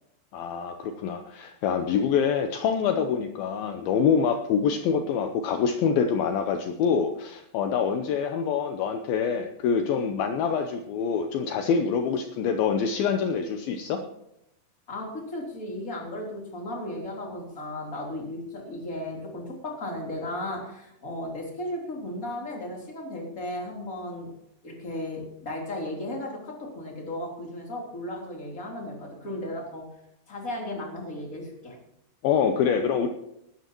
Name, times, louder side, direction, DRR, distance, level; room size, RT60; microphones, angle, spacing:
voice 1, 0.3-14.0 32.2-33.1, left 6 dB, 80° left, 6 dB, 2.1 m, -25 dB
voice 2, 14.9-24.3 24.6-29.9 30.3-31.8, left 1 dB, 20° left, -1 dB, 3.2 m, -35 dB
18.5 x 13.0 x 3.1 m, 0.80 s
omnidirectional pair, 5.3 m